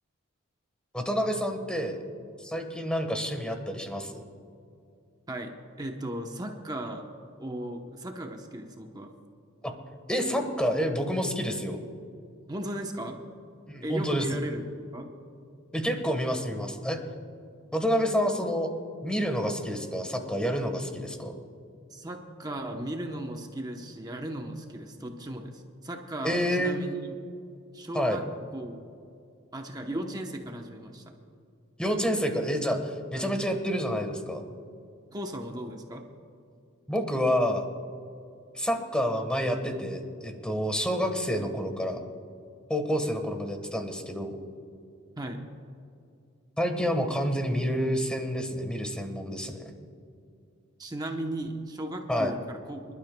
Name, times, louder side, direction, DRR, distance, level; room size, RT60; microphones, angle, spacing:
voice 1, 0.9-2.0 2.4-4.2 9.6-9.7 10.1-11.8 13.7-14.4 15.7-17.0 17.7-18.7 19.0-21.4 26.2-26.8 27.9-28.2 31.8-34.4 36.9-37.6 38.5-42.0 42.7-44.4 46.6-49.6 52.1-52.3, equal, 5° left, 5 dB, 1.3 m, -28 dB
voice 2, 5.8-7.1 7.4-9.1 12.5-13.2 13.8-14.6 14.9-15.1 21.9-27.2 27.7-28.2 28.5-28.8 29.5-31.0 33.1-33.3 35.1-36.1 45.2-45.4 50.8-52.9, right 1 dB, 20° right, 3 dB, 0.9 m, -36 dB
26.0 x 12.5 x 2.2 m, 2.4 s
head